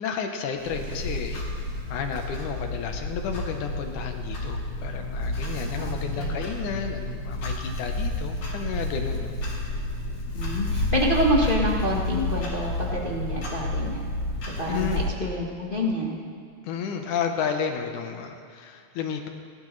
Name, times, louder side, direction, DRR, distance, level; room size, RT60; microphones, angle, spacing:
voice 1, 0.0-1.4 1.9-9.3 14.7-15.0 16.6-19.3, left 6 dB, 85° left, 4 dB, 2.5 m, -32 dB
Clock, 0.6-15.1, left 1 dB, 65° left, 4.3 m, -30 dB
voice 2, 5.8-6.4 10.3-14.1 14.6-16.2, equal, 35° left, -4 dB, 0.8 m, -27 dB
29.5 x 12.5 x 3.3 m, 2.2 s
omnidirectional pair, 3.5 m